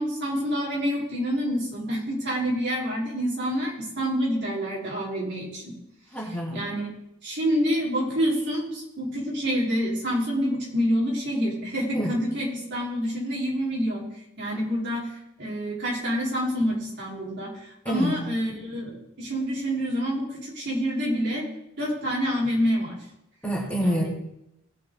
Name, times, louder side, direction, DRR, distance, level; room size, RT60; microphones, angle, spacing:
voice 1, 0.0-5.7 6.5-6.9 7.2-14.1 14.4-15.1 15.4-21.5 21.8-23.0 23.8-24.1, equal, 55° right, -5 dB, 4.2 m, -27 dB
voice 2, 6.1-6.5 11.9-12.1 17.8-18.1 23.4-24.1, equal, 5° left, -5 dB, 3.0 m, -26 dB
19.0 x 6.5 x 3.9 m, 0.82 s
head